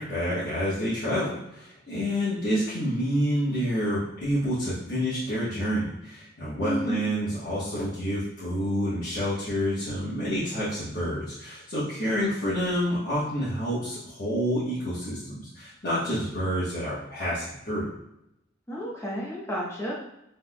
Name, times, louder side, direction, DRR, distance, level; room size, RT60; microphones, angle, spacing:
voice 1, 0.0-17.9, equal, 50° left, -10 dB, 1.2 m, -28 dB
voice 2, 6.6-7.0 18.7-19.9, equal, 15° left, -4 dB, 1.0 m, -31 dB
5.8 x 3.4 x 2.2 m, 0.82 s
head